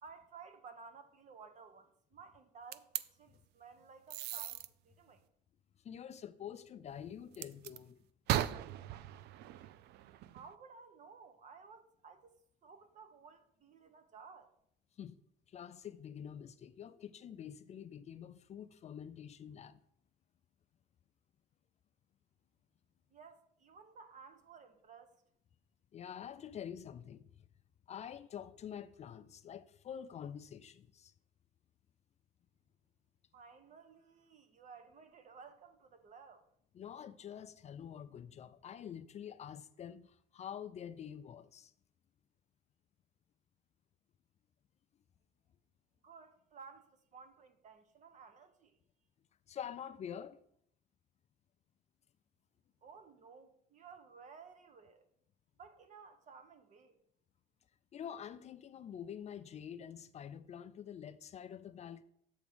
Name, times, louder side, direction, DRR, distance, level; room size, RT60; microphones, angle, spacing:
voice 1, 0.0-5.3 10.3-12.3 12.6-14.5 23.1-25.2 33.3-36.4 46.0-48.8 52.8-55.1 55.6-57.0, right 5 dB, 45° right, 1.0 m, -56 dB
sound 1, 2.7-3.0 4.1-4.7 7.3-7.8 8.3-10.5, right 13 dB, 75° right, 0.4 m, -38 dB
voice 2, 5.8-8.0 15.0-15.2 15.5-19.8 25.9-27.3 27.9-31.1 36.7-41.7 49.5-50.4 57.9-62.0, left 9 dB, 40° left, 0.4 m, -47 dB
7.9 x 3.6 x 6.0 m
cardioid pair, 110°, 17 cm